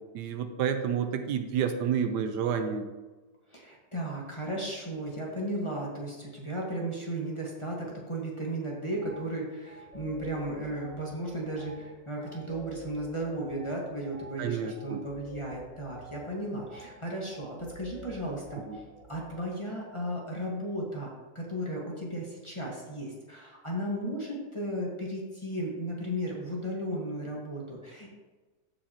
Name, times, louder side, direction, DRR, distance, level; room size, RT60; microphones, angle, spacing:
voice 1, 0.1-2.9 14.4-15.0 18.7-18.8, right 7 dB, 80° right, 8 dB, 1.3 m, -29 dB
voice 2, 3.5-18.8 19.1-21.1 21.3-28.1, right 1 dB, 20° left, -3 dB, 1.2 m, -35 dB
sound 1, 9.0-9.2 9.6-19.4, equal, 45° right, 2.3 m, -49 dB
14.0 x 5.1 x 2.9 m, 1.3 s
omnidirectional pair, 1.8 m